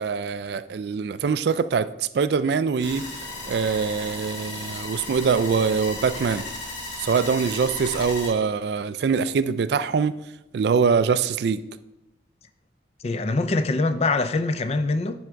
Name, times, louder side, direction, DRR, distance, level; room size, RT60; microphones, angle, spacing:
voice 1, 0.0-3.0 3.5-6.4 7.0-10.1 10.5-11.6, right 5 dB, 60° right, 0.3 m, -23 dB
sound 1, 2.8-8.3, left 2 dB, 75° left, 2.3 m, -35 dB
voice 2, 13.0-15.2, left 3 dB, 35° left, 0.4 m, -23 dB
9.8 x 3.6 x 4.5 m
head